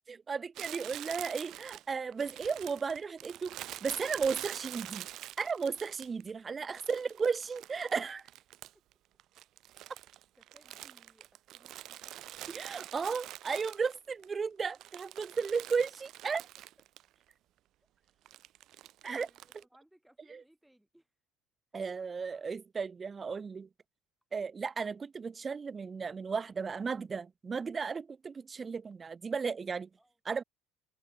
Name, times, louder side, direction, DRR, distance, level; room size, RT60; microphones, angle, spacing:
voice 1, 0.1-5.1 5.4-8.2 12.5-16.4 19.0-19.3 20.3-20.4 21.7-23.7 24.3-29.9 30.3-30.4, right 5 dB, 25° right, 0.5 m, -35 dB
Crumpling crinkling, 0.5-6.3 6.7-8.9 9.2-14.2 14.6-17.1 17.3-17.4 18.3-19.6, right 14 dB, 50° right, 0.8 m, -46 dB
voice 2, 10.4-12.3 18.0-18.2 19.0-21.1 30.0-30.2, right 1 dB, 5° right, 2.9 m, -65 dB
figure-of-eight pair, 60°, 0 cm